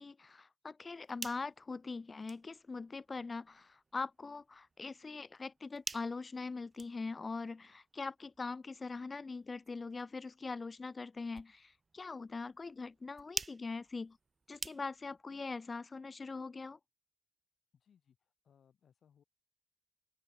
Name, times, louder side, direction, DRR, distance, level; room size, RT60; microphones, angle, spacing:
voice 1, 0.0-14.2 14.5-16.8, left 4 dB, 45° left, 0.4 m, -42 dB
sound 1, 0.8-15.2, right 4 dB, 45° right, 0.5 m, -50 dB
voice 2, 17.7-19.2, left 8 dB, 80° left, 5.6 m, -69 dB
cardioid pair, 50°, 0 cm